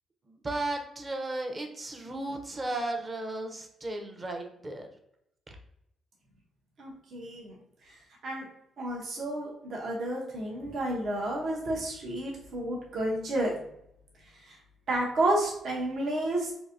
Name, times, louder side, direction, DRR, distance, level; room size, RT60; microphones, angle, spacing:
voice 1, 0.3-4.9, right 2 dB, 30° right, 3 dB, 0.7 m, -35 dB
voice 2, 6.8-7.5 8.2-8.4 8.8-13.5 14.5-14.6 14.9-16.5, right 1 dB, 60° right, -2 dB, 0.8 m, -31 dB
3.8 x 2.7 x 2.6 m, 0.78 s
cardioid pair, 90°, 0 cm